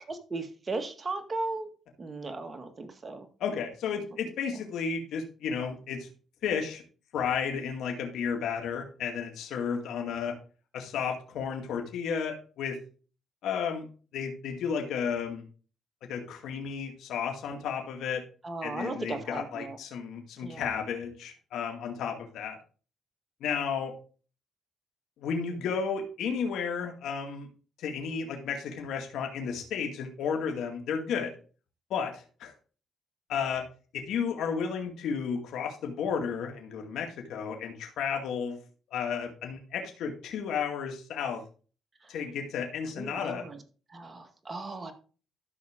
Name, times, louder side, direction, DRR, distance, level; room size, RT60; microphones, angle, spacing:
voice 1, 0.3-1.7 2.0-3.3 18.4-19.8 20.4-20.6 43.0-43.6 43.9-44.9, right 3 dB, 30° right, 6 dB, 1.8 m, -36 dB
voice 2, 3.4-6.1 6.4-6.8 7.1-10.4 10.7-12.8 13.4-13.9 14.1-15.4 16.1-18.2 18.6-22.6 23.4-23.9 25.2-27.5 27.8-31.3 31.9-32.5 33.3-33.6 33.9-38.6 38.9-41.4 42.1-43.4, left 6 dB, 80° left, 2 dB, 2.2 m, -33 dB
13.5 x 5.8 x 3.7 m, 0.38 s
cardioid pair, 90°, 0 cm